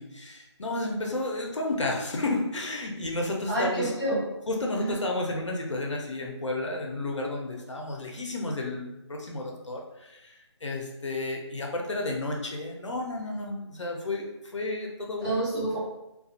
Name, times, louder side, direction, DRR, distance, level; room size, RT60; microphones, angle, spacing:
voice 1, 0.0-3.9 4.5-15.3, left 2 dB, 80° left, 0 dB, 0.6 m, -32 dB
voice 2, 3.5-4.2 4.7-5.0 15.2-15.8, right 2 dB, 15° left, -11 dB, 1.4 m, -28 dB
2.4 x 2.3 x 2.7 m, 0.91 s
figure-of-eight pair, 180°, 15 cm